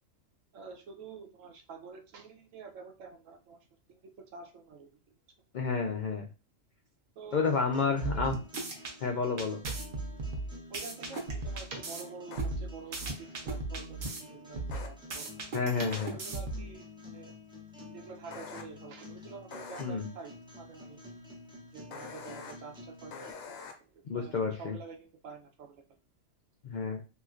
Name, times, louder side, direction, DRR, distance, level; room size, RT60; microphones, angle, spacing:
voice 1, 0.5-3.6 3.9-4.9 7.2-8.4 10.7-15.4 16.1-16.8 17.1-17.3 17.9-21.0 21.7-23.3 23.9-25.8, right 5 dB, 80° right, 3 dB, 1.1 m, -48 dB
voice 2, 5.5-6.3 7.3-8.4 9.0-9.6 15.5-16.2 19.8-20.1 24.1-24.7 26.6-27.0, left 5 dB, 75° left, 2 dB, 0.4 m, -30 dB
sound 1, 7.3-23.3, left 2 dB, 5° right, 0.4 m, -50 dB
sound 2, 8.0-8.9 9.4-12.0 12.4-14.2 14.6-16.7, right 2 dB, 50° right, 0.8 m, -36 dB
sound 3, 11.1-11.2 12.3-12.4 14.7-14.9 15.9-16.1 18.3-18.6 19.5-19.8 21.9-22.5 23.1-23.7, left 5 dB, 90° left, 1.0 m, -44 dB
3.1 x 3.0 x 2.4 m, 0.32 s
omnidirectional pair, 1.3 m